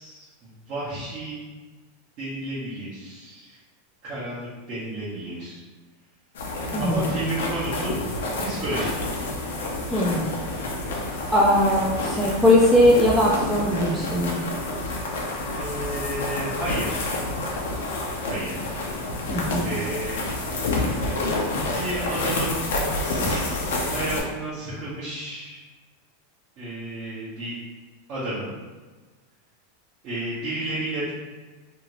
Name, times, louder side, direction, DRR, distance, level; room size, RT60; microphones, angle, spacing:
voice 1, 0.0-1.4 2.2-3.6 4.0-5.6 6.8-8.0 8.4-8.9 15.5-17.1 18.3-18.6 19.6-20.3 21.7-22.6 23.0-25.6 26.6-27.6 28.1-28.5 30.0-31.1, right 1 dB, 35° right, -11 dB, 0.8 m, -32 dB
sound 1, 6.3-24.2, left 2 dB, 85° left, 0.6 m, -28 dB
voice 2, 6.7-7.1 9.9-10.2 11.3-14.4 19.3-19.7, left 1 dB, ahead, -6 dB, 0.3 m, -20 dB
2.7 x 2.4 x 2.9 m, 1.3 s
supercardioid pair, 165°, 0 cm